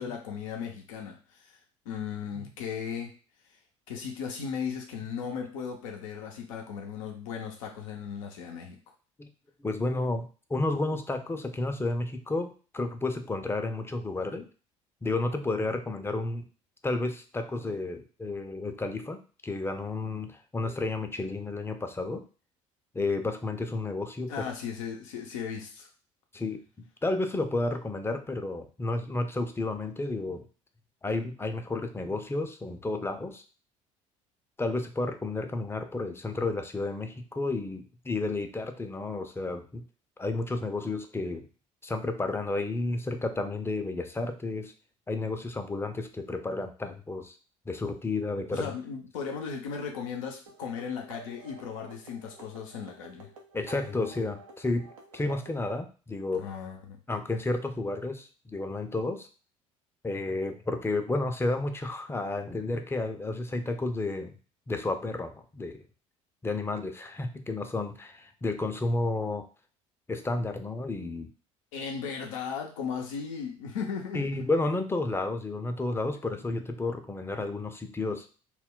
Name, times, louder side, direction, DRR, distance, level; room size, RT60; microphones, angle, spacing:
voice 1, 0.0-1.6 1.9-3.1 3.9-8.8 24.3-25.9 48.5-53.3 56.4-57.0 71.7-74.3, left 6 dB, 80° left, 2 dB, 0.6 m, -36 dB
voice 2, 9.6-14.5 15.0-16.5 16.8-22.2 22.9-24.5 26.3-30.5 31.0-33.4 34.6-39.8 40.2-41.5 41.8-44.7 45.1-47.3 47.7-48.7 53.5-54.9 55.1-56.5 57.1-59.3 60.0-64.4 64.7-65.8 66.4-69.5 70.1-71.3 74.1-78.3, left 2 dB, 15° left, 7 dB, 0.5 m, -31 dB
sound 1, 50.5-55.6, right 3 dB, 85° right, 0.5 m, -50 dB
2.3 x 2.1 x 3.7 m, 0.37 s
hypercardioid pair, 60°, 17 cm